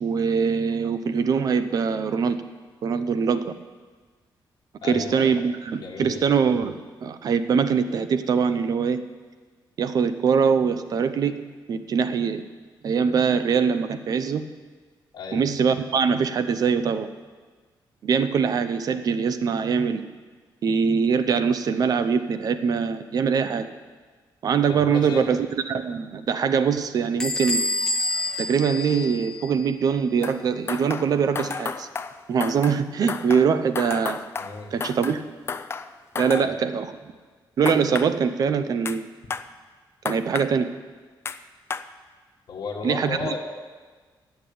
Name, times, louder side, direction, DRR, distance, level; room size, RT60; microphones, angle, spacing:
voice 1, 0.0-2.4 2.8-3.5 4.8-9.0 9.8-12.4 12.8-14.4 15.3-17.1 18.0-20.0 20.6-23.7 24.4-25.4 25.7-27.6 28.4-31.9 32.3-34.3 34.7-35.2 36.2-36.9 37.6-39.1 40.0-40.7 42.8-43.3, right 6 dB, 50° right, 11 dB, 0.7 m, -23 dB
voice 2, 4.8-5.3 5.8-6.2 15.1-15.4 24.7-25.3 34.4-34.7 36.3-36.6 42.5-43.4, left 4 dB, 55° left, -4 dB, 1.5 m, -34 dB
Bell / Squeak, 27.2-29.7, left 2 dB, 5° left, 0.9 m, -28 dB
sound 1, 30.2-30.4 30.7-32.8 33.1-35.2 35.5-36.5 37.7-38.1 38.9-39.0 39.3-39.5 40.1-40.5 41.3-41.4 41.7-41.9, left 5 dB, 30° left, 0.4 m, -32 dB
11.0 x 8.2 x 8.5 m, 1.4 s
wide cardioid pair, 170°, 8 cm